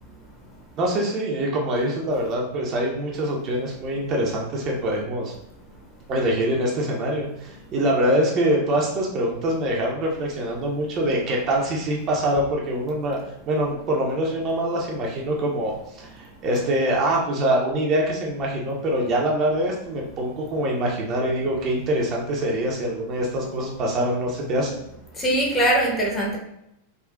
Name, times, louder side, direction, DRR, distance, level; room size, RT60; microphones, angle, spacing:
voice 1, 0.8-5.3 6.1-13.2 13.5-24.8, right 1 dB, 35° right, -2 dB, 0.6 m, -24 dB
voice 2, 25.1-26.4, right 1 dB, 20° left, -2 dB, 0.8 m, -21 dB
3.7 x 2.4 x 2.2 m, 0.82 s
figure-of-eight pair, 90°, 0 cm